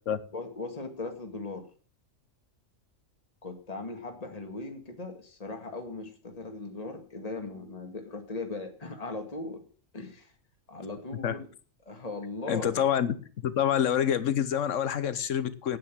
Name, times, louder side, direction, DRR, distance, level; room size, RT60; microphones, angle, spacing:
voice 1, 0.3-1.6 3.4-9.6 9.9-10.3 10.7-11.5 11.9-12.8, left 3 dB, 30° left, 2.1 m, -38 dB
voice 2, 12.5-13.1 13.4-15.8, left 9 dB, 75° left, 1.3 m, -27 dB
9.4 x 8.9 x 7.3 m
omnidirectional pair, 1.3 m